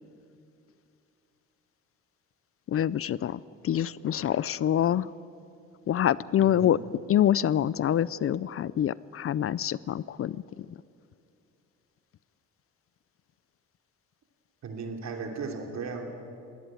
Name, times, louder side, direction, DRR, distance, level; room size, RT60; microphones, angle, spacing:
voice 1, 2.7-5.1 5.9-6.8 7.1-10.8, left 10 dB, 50° left, 20 dB, 0.5 m, -26 dB
voice 2, 6.4-6.8 14.6-16.1, right 4 dB, 65° right, 3 dB, 3.3 m, -36 dB
21.0 x 18.0 x 9.1 m, 2.6 s
cardioid pair, 90°, 30 cm